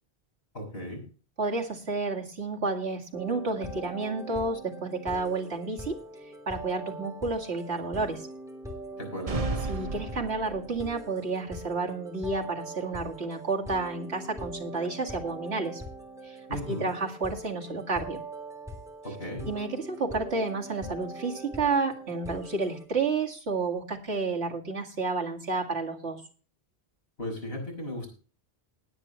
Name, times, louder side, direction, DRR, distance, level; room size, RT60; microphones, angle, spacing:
voice 1, 0.5-1.0 9.0-9.5 16.5-16.9 19.0-19.5 27.2-28.1, left 1 dB, 70° left, 1 dB, 6.0 m, -36 dB
voice 2, 1.4-6.0 6.5-8.3 9.7-15.8 16.2-18.2 19.4-26.2, right 3 dB, 85° right, 0 dB, 2.4 m, -31 dB
sound 1, 3.1-22.9, right 1 dB, 5° right, 3.1 m, -42 dB
sound 2, 9.3-10.9, right 3 dB, 40° right, 0.8 m, -33 dB
19.5 x 8.7 x 3.0 m, 0.37 s
omnidirectional pair, 1.1 m